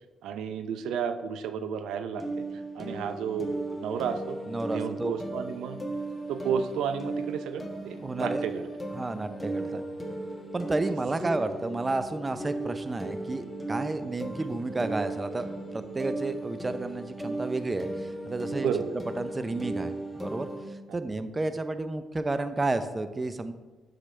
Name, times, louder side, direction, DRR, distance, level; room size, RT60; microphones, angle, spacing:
voice 1, 0.2-2.4 2.7-4.4 4.7-5.8 6.3-8.6 9.7-9.8 18.6-19.1 20.9-21.0, right 7 dB, 85° right, 9 dB, 0.5 m, -32 dB
sound 1, 2.1-20.7, right 2 dB, 10° left, 1.5 m, -36 dB
voice 2, 4.5-5.2 8.0-8.5 8.9-9.8 10.5-15.5 15.7-18.7 19.2-20.5 20.9-23.5, right 2 dB, 25° right, 10 dB, 0.6 m, -31 dB
10.0 x 6.6 x 3.3 m, 1.2 s
cardioid pair, 90°, 0 cm